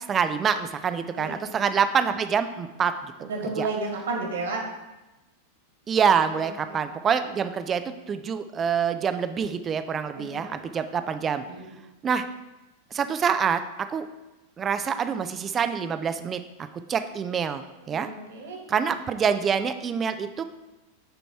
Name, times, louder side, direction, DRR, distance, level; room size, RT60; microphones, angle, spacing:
voice 1, 0.1-3.3 3.6-3.7 5.9-11.4 12.0-12.3 12.9-13.6 13.9-14.1 14.6-16.4 16.9-18.1 18.7-20.4, right 7 dB, 25° right, 10 dB, 0.5 m, -26 dB
voice 2, 1.1-1.6 3.2-4.6 6.3-6.8 10.2-10.6 11.5-11.7 17.9-18.6, right 3 dB, 65° right, 0 dB, 1.9 m, -33 dB
9.1 x 4.0 x 4.5 m, 1.0 s
figure-of-eight pair, 90°, 0 cm